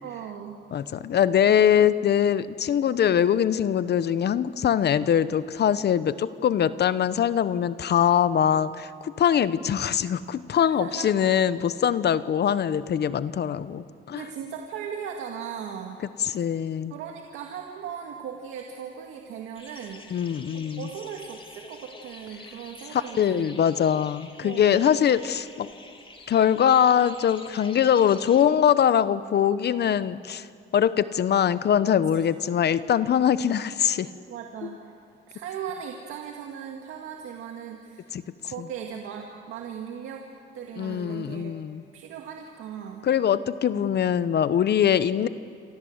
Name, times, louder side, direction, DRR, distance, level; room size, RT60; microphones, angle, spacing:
voice 1, 0.0-0.6 1.8-1.9 10.8-11.1 14.1-16.0 16.9-20.3 20.8-23.6 24.4-24.8 32.1-32.2 34.3-34.9 35.3-38.1 38.4-40.2 40.5-41.5 41.9-43.0 43.7-44.0, right 8 dB, 90° right, 2 dB, 2.0 m, -38 dB
voice 2, 0.7-14.2 16.2-16.9 20.1-20.9 22.9-25.7 26.3-30.5 30.7-34.1 38.1-38.2 40.8-41.8 43.0-45.3, left 9 dB, 55° left, 15 dB, 0.9 m, -22 dB
sound 1, 19.6-28.4, left 3 dB, 25° left, 2.7 m, -47 dB
27.0 x 26.0 x 8.0 m, 2.4 s
cardioid pair, 90°, 20 cm